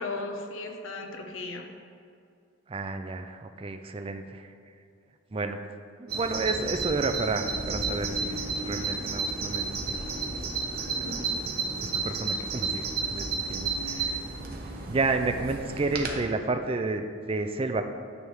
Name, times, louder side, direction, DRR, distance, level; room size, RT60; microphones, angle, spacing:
voice 1, 0.0-1.7 10.8-11.3, left 3 dB, 80° left, 3 dB, 0.8 m, -36 dB
voice 2, 2.7-4.5 5.3-5.6 6.0-10.0 11.1-11.2 11.8-12.8 13.1-14.2 14.8-17.8, right 3 dB, 30° right, 7 dB, 0.4 m, -31 dB
Bird vocalization bird call bird song, 6.1-16.2, right 4 dB, 50° right, 0.8 m, -32 dB
9.6 x 3.4 x 6.3 m, 2.4 s
head